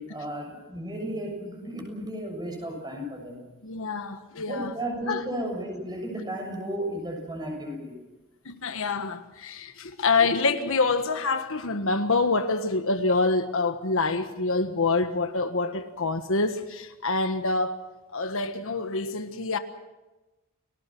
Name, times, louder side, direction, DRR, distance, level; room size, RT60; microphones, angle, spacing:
voice 1, 0.0-3.4 4.5-8.0, right 1 dB, 20° right, 7.1 m, -34 dB
voice 2, 3.6-4.7 5.1-5.2 8.4-17.8 18.1-19.6, left 3 dB, 65° left, 1.4 m, -26 dB
30.0 x 19.5 x 6.1 m
head